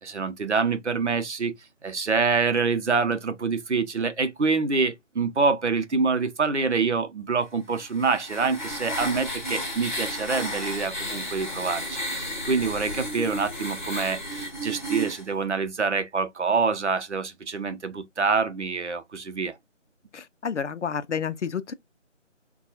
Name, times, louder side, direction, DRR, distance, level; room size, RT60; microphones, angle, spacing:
voice 1, 0.0-1.5 1.8-19.6, right 4 dB, 65° right, 0.7 m, -26 dB
sound 1, 7.7-15.2, equal, 40° left, 0.9 m, -33 dB
voice 2, 20.1-21.7, left 7 dB, 70° left, 0.5 m, -30 dB
3.3 x 2.3 x 2.9 m
figure-of-eight pair, 165°, 37 cm